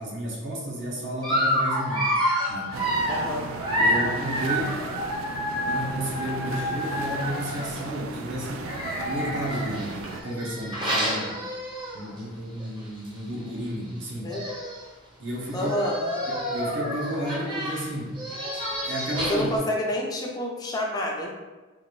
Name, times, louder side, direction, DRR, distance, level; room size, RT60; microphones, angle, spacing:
voice 1, 0.0-2.1 2.5-2.8 3.7-4.8 5.7-8.7 9.0-11.4 11.9-14.3 15.2-15.7 16.3-18.2 18.7-19.5, equal, 65° right, -3 dB, 0.9 m, -32 dB
Dog, 1.2-7.8 8.6-12.2 12.6-12.8 13.1-13.2 14.0-14.1 14.3-14.9 15.5-19.6, equal, 25° right, 0.7 m, -29 dB
sound 1, 2.7-10.2, right 3 dB, 80° right, 0.4 m, -36 dB
voice 2, 3.1-3.5 3.8-4.0 14.2-14.4 15.5-16.3 19.3-21.3, left 1 dB, 20° left, -1 dB, 0.4 m, -29 dB
3.8 x 2.5 x 3.1 m, 1.2 s
head